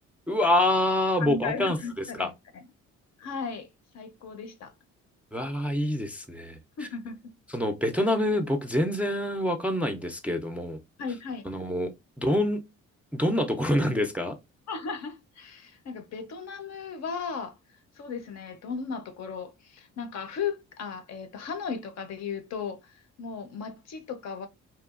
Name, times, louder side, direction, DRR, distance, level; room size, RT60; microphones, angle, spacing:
voice 1, 0.3-1.8 2.2-2.3 5.3-6.6 7.5-10.8 11.5-11.9 12.2-12.6 13.1-14.3, left 1 dB, 5° right, 0.4 m, -26 dB
voice 2, 1.2-2.6 3.2-3.7 3.9-4.7 6.8-7.2 11.0-11.5 14.7-17.6 18.0-24.5, left 5 dB, 60° left, 0.6 m, -36 dB
2.8 x 2.3 x 2.3 m
cardioid pair, 90°, 30 cm